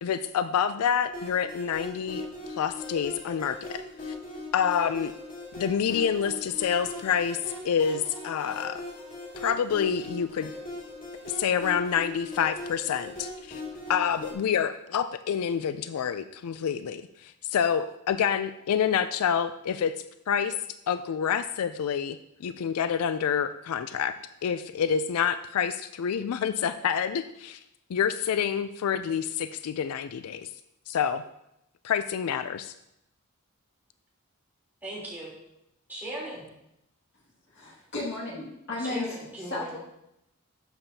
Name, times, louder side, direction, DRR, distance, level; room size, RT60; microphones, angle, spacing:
voice 1, 0.0-3.8 4.5-5.1 5.6-8.8 9.4-10.5 11.3-13.6 13.9-19.9 20.3-20.6 20.9-24.1 24.4-27.6 27.9-30.5 30.9-31.2 31.8-32.7, left 7 dB, 80° left, 12 dB, 0.4 m, -27 dB
sound 1, 1.1-14.3, left 2 dB, 40° left, 2.2 m, -40 dB
voice 2, 34.8-35.3 35.9-36.4 38.8-39.8, right 1 dB, 10° right, -7 dB, 3.4 m, -38 dB
voice 3, 37.5-39.1 39.5-39.8, left 2 dB, 55° left, -3 dB, 2.0 m, -34 dB
11.5 x 6.9 x 2.8 m, 0.83 s
head